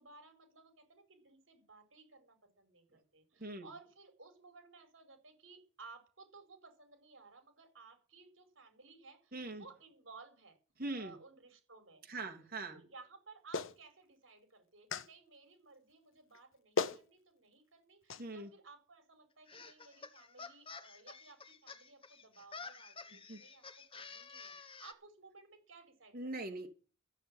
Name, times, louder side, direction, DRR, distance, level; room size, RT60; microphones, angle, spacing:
voice 1, 0.0-10.6 10.9-12.3 12.7-23.6 23.9-26.6, right 4 dB, 70° right, 7 dB, 5.1 m, -58 dB
voice 2, 3.4-3.7 9.3-9.6 10.8-11.2 12.1-12.8 18.2-18.5 23.1-23.4 26.1-26.7, right 2 dB, 50° right, 3 dB, 2.9 m, -42 dB
Clapping, 13.5-13.8 14.9-15.1 16.3-16.4 16.8-17.0 18.1-18.2, left 4 dB, 80° left, 1.0 m, -35 dB
sound 1, 19.5-24.9, left 4 dB, 30° left, 1.3 m, -51 dB
14.5 x 7.5 x 9.9 m, 0.36 s
head